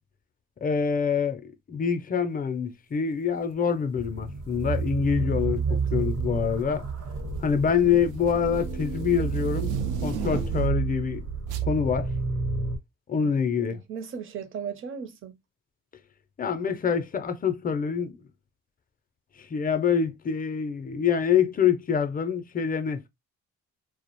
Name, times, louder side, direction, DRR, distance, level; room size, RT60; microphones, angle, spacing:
voice 1, 0.6-6.8 7.4-9.7 10.0-11.2 11.7-12.1 13.1-13.8 16.4-18.2 19.5-23.1, left 7 dB, 30° left, 0.4 m, -25 dB
sound 1, 3.9-12.8, right 5 dB, 65° right, 1.0 m, -30 dB
sound 2, 4.5-4.8 5.8-6.2 6.6-10.9 11.5-11.7, right 6 dB, 90° right, 0.5 m, -37 dB
voice 2, 7.6-8.0 13.1-15.4, right 7 dB, 45° right, 0.6 m, -38 dB
2.3 x 2.0 x 2.9 m
cardioid pair, 90°, 30 cm